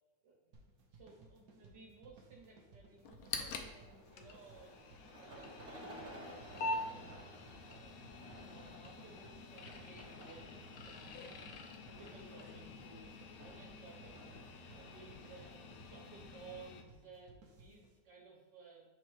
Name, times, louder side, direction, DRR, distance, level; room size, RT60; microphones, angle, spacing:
sound 1, 0.5-18.0, right 3 dB, 65° right, 1.3 m, -61 dB
voice 1, 0.9-8.0 8.4-13.1 13.4-14.3 14.7-15.5 15.8-18.8, right 4 dB, 85° right, -5 dB, 1.7 m, -58 dB
sound 2, 3.0-16.8, left 3 dB, 70° left, 0.9 m, -47 dB
sound 3, 3.6-15.9, equal, 35° right, 1.4 m, -56 dB
7.6 x 4.5 x 3.1 m, 1.2 s
omnidirectional pair, 1.9 m